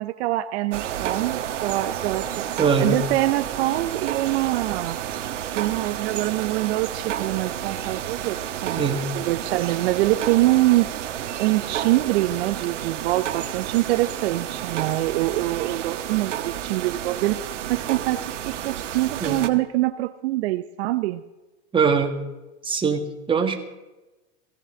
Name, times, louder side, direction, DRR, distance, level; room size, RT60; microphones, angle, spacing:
voice 1, 0.0-2.5 2.8-5.0 5.5-8.8 9.1-10.9 11.4-21.2, right 17 dB, 60° right, 11 dB, 0.8 m, -24 dB
sound 1, 0.7-19.5, right 10 dB, 85° right, 1.4 m, -31 dB
voice 2, 2.6-3.0 8.8-9.0 19.2-19.4 21.7-22.1 22.6-23.6, right 5 dB, 15° right, 4 dB, 1.7 m, -22 dB
17.0 x 16.5 x 3.9 m, 1.1 s
hypercardioid pair, 125°, 36 cm